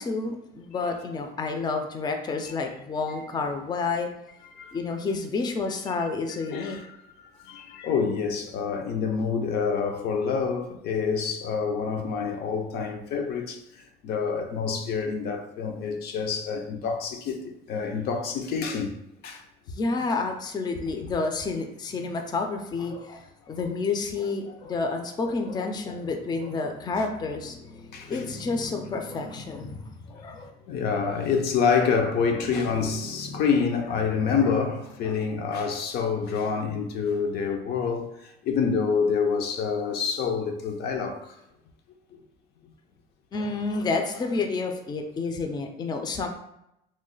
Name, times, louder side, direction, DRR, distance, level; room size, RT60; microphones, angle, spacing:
voice 1, 0.0-4.1 4.7-6.8 19.7-30.5 32.7-33.5 34.1-34.3 35.0-35.2 43.3-46.3, left 4 dB, 25° left, 0.4 m, -30 dB
voice 2, 6.5-6.9 7.4-18.9 19.2-19.4 27.9-28.2 30.7-41.4, left 5 dB, 75° left, 0.5 m, -27 dB
3.0 x 2.0 x 3.8 m
cardioid pair, 110°, 17 cm